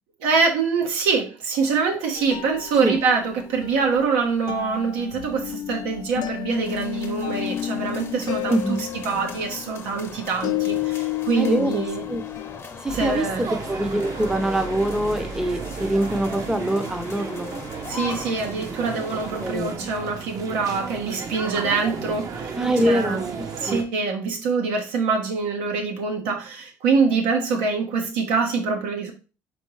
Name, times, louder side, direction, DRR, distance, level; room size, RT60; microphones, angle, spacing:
voice 1, 0.2-8.6 9.0-12.0 12.9-13.4 17.9-22.6 22.8-23.2 23.6-29.1, right 5 dB, 85° right, 2 dB, 1.2 m, -24 dB
sound 1, 2.2-12.6, left 14 dB, 60° left, 0.4 m, -31 dB
sound 2, 6.5-19.6, left 5 dB, 35° left, 0.8 m, -40 dB
voice 2, 8.5-8.8 11.4-12.2 12.8-13.3 13.7-17.6 19.4-19.9 22.5-23.2 23.7-23.9, right 1 dB, 5° right, 7 dB, 0.7 m, -24 dB
sound 3, 12.9-23.8, right 5 dB, 45° right, 0.8 m, -34 dB
4.5 x 3.7 x 3.2 m, 0.34 s
supercardioid pair, 90°, 8 cm